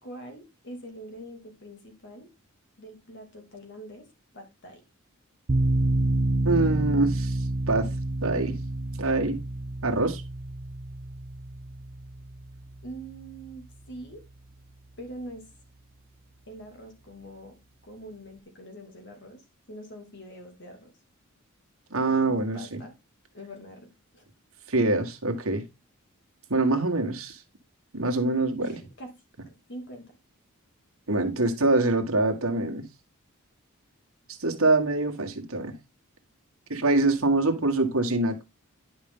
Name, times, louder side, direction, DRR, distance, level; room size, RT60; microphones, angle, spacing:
voice 1, 0.0-2.3 2.8-4.1 4.3-4.8 12.8-14.2 15.0-15.5 16.5-17.6 17.8-20.9 22.0-22.9 23.3-24.3 28.6-30.1, right 1 dB, 60° left, 2.7 m, -44 dB
sound 1, 5.5-14.4, right 1 dB, 45° right, 0.9 m, -29 dB
voice 2, 6.4-7.4 7.7-7.9 8.2-8.6 9.0-9.4 9.8-10.2 21.9-22.8 24.7-25.6 26.5-27.4 27.9-28.8 31.1-32.9 34.4-35.8 36.7-38.4, right 2 dB, 80° right, 1.7 m, -24 dB
10.5 x 5.3 x 3.8 m
head